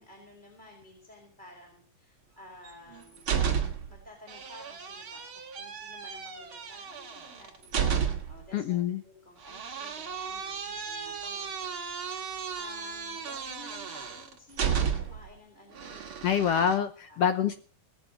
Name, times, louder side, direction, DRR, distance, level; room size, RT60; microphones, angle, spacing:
voice 1, 0.0-3.3 3.9-8.8 9.0-12.2 12.6-16.4 17.1-17.4, left 1 dB, 15° left, 0 dB, 4.4 m, -53 dB
sound 1, 2.7-4.0 4.3-8.4 9.4-15.3 15.7-16.8, right 7 dB, 45° right, 2.3 m, -33 dB
voice 2, 8.5-9.0 16.2-17.5, left 8 dB, 70° left, 9 dB, 1.5 m, -26 dB
19.5 x 6.9 x 7.7 m, 0.43 s
omnidirectional pair, 3.6 m